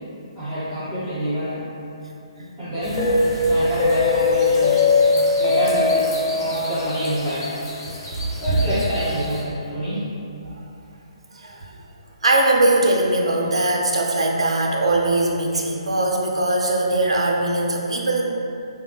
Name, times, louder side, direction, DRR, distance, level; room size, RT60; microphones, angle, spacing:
voice 1, 0.3-1.6 2.6-4.9 5.4-7.5 8.4-10.0, equal, 10° left, -22 dB, 1.4 m, -27 dB
sound 1, 2.8-9.4, left 3 dB, 35° left, 0.6 m, -21 dB
voice 2, 11.3-11.7 12.2-18.3, right 2 dB, 65° right, -1 dB, 0.4 m, -20 dB
3.1 x 2.1 x 2.2 m, 2.7 s
figure-of-eight pair, 135°, 3 cm